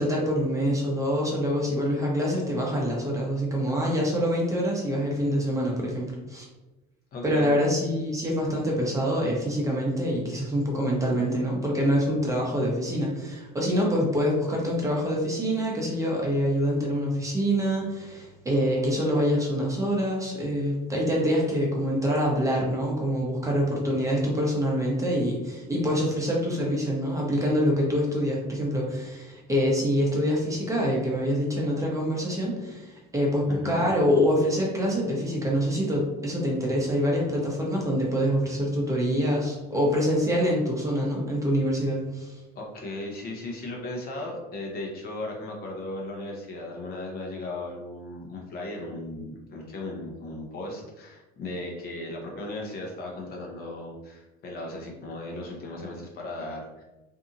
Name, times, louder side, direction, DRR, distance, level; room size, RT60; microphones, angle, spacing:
voice 1, 0.0-6.5 7.2-42.3, equal, 15° right, -2 dB, 0.8 m, -25 dB
voice 2, 7.1-7.6 33.5-33.9 42.5-56.8, left 2 dB, 45° left, -1 dB, 0.8 m, -36 dB
2.7 x 2.6 x 2.5 m, 1.1 s
supercardioid pair, 100°, 21 cm